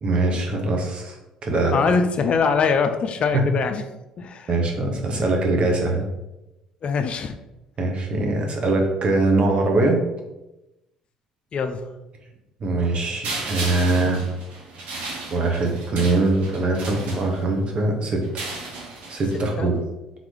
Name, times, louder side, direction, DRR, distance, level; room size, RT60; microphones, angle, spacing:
voice 1, 0.0-1.2 1.4-1.8 4.5-6.1 7.8-10.0 12.6-14.2 15.3-18.5 19.1-19.7, right 2 dB, 45° right, 2 dB, 1.1 m, -22 dB
voice 2, 1.7-3.8 4.2-4.5 6.8-7.3 11.5-11.9 19.6-19.7, left 5 dB, 45° left, 8 dB, 0.5 m, -22 dB
sound 1, 13.2-17.7 18.2-19.5, right 3 dB, 70° right, 1.0 m, -34 dB
3.8 x 3.1 x 3.8 m, 0.97 s
hypercardioid pair, 60°, 3 cm